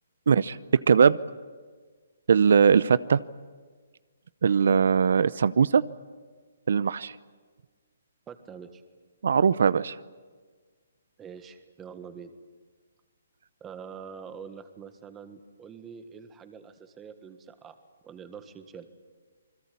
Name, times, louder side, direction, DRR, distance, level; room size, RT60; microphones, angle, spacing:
voice 1, 0.3-1.2 2.3-3.2 4.4-5.8 6.7-7.1 9.2-9.9, right 6 dB, 65° right, 18 dB, 0.8 m, -20 dB
voice 2, 8.3-8.8 11.2-12.3 13.6-17.8 18.0-18.9, right 6 dB, 10° right, 9 dB, 1.5 m, -45 dB
28.0 x 21.0 x 8.5 m, 1.5 s
hypercardioid pair, 165°, 0 cm